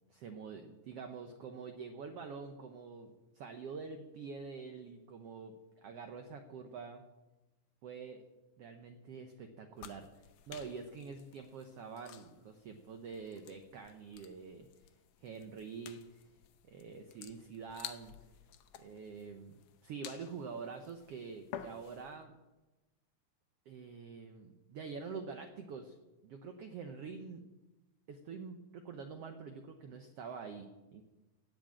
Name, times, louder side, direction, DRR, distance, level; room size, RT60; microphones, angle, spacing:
voice 1, 0.1-7.0 7.8-8.2 8.6-10.1 10.5-14.7 15.2-16.2 16.6-18.1 18.8-22.3 23.7-26.0 26.2-27.4 28.1-31.0, right 5 dB, 75° right, 6 dB, 1.4 m, -46 dB
sound 1, 9.8-22.2, left 10 dB, 75° left, 2.2 m, -53 dB
17.0 x 6.3 x 8.7 m, 1.1 s
omnidirectional pair, 3.9 m